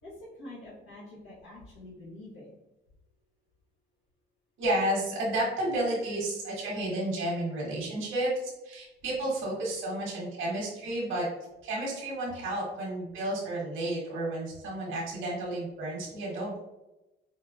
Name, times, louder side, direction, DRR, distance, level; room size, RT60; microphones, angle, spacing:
voice 1, 0.0-2.6, left 1 dB, 80° left, -9 dB, 1.4 m, -46 dB
voice 2, 4.6-11.3 11.6-16.6, right 1 dB, 85° right, -4 dB, 1.2 m, -31 dB
4.7 x 2.1 x 2.4 m, 0.96 s
cardioid pair, 90°, 20 cm